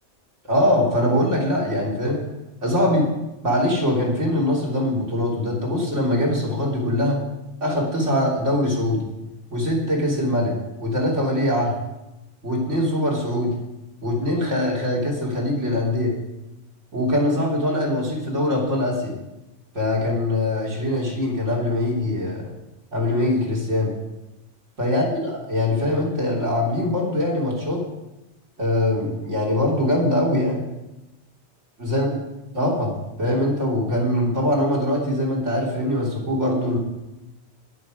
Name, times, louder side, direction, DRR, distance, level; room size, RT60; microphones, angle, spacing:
voice 1, 0.4-2.2 2.6-3.1 3.4-7.2 7.6-9.1 9.5-11.8 12.4-13.5 14.0-16.1 16.9-19.1 19.7-22.5 22.9-23.9 24.8-27.9 28.6-30.6 31.8-32.2 32.5-36.8, left 1 dB, 90° right, -1 dB, 3.6 m, -22 dB
20.0 x 7.1 x 5.1 m, 0.97 s
omnidirectional pair, 1.2 m